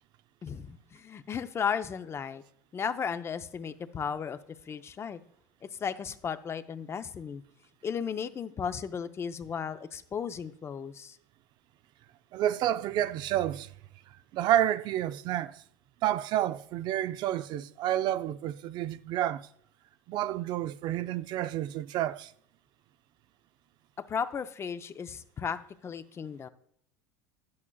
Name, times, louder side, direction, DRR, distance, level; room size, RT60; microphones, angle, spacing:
voice 1, 0.4-2.4 2.7-4.4 4.7-5.2 5.6-7.4 7.8-11.2 24.0-26.5, left 7 dB, 30° left, 0.5 m, -35 dB
voice 2, 12.3-13.7 14.3-15.6 16.0-19.4 20.1-22.3, right 12 dB, 50° right, 0.4 m, -29 dB
11.0 x 8.5 x 2.3 m
supercardioid pair, 100°, 9 cm